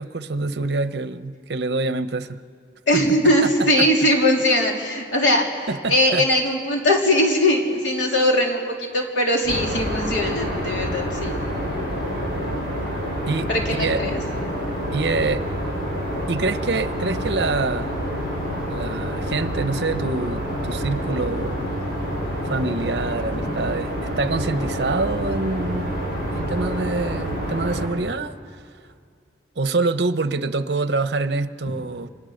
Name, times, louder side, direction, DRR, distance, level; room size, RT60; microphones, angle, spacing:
voice 1, 0.0-2.4 2.9-3.0 3.4-3.5 3.8-3.9 5.7-6.3 13.3-14.0 14.9-15.4 16.3-17.9 18.7-21.7 22.4-25.9 26.3-28.3 29.6-32.1, right 3 dB, 65° right, 12 dB, 0.8 m, -25 dB
voice 2, 2.9-11.3 13.5-14.2 23.3-23.5, left 1 dB, 90° left, 0 dB, 3.6 m, -20 dB
sound 1, 9.4-27.9, equal, 55° left, 6.7 m, -27 dB
29.0 x 25.5 x 6.5 m, 2.3 s
head